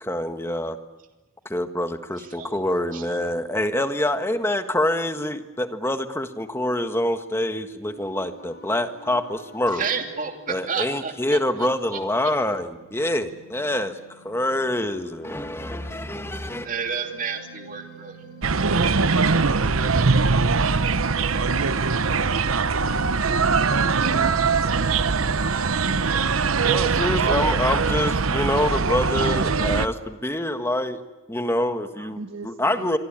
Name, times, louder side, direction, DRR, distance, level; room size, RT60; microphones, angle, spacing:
voice 1, 0.0-0.8 1.4-9.8 10.5-13.9 14.2-16.7 26.7-31.0 31.3-33.0, left 1 dB, 10° left, 8 dB, 1.7 m, -26 dB
voice 2, 2.2-2.6 2.9-3.5 9.7-11.4 11.9-12.0 16.6-18.2, right 6 dB, 40° right, 4 dB, 2.8 m, -31 dB
sound 1, 7.8-18.8, right 2 dB, 50° left, 5.6 m, -49 dB
sound 2, 18.4-29.9, right 4 dB, 90° right, 1.0 m, -21 dB
voice 3, 22.3-23.1 23.9-24.4 32.0-33.0, right 2 dB, 65° right, 6 dB, 1.7 m, -38 dB
25.5 x 25.0 x 9.0 m, 1.1 s
head